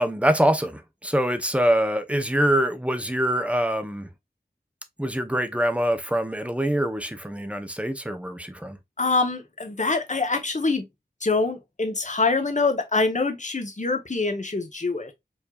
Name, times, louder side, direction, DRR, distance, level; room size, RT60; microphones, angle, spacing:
voice 1, 0.0-4.1 5.0-8.8, right 1 dB, 5° right, 0.6 m, -24 dB
voice 2, 9.0-10.8 11.2-15.1, left 3 dB, 45° left, 0.8 m, -25 dB
4.7 x 2.7 x 2.3 m
wide cardioid pair, 40°, 18 cm